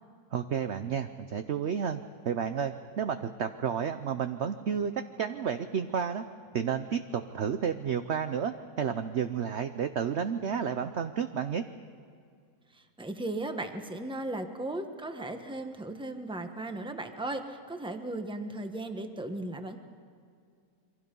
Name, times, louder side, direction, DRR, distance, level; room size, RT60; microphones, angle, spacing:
voice 1, 0.3-4.9 5.2-6.2 6.5-11.6, right 7 dB, 60° right, 9 dB, 0.7 m, -31 dB
voice 2, 12.7-19.8, right 2 dB, 5° right, 6 dB, 1.1 m, -36 dB
28.0 x 24.0 x 5.4 m, 2.3 s
omnidirectional pair, 1.9 m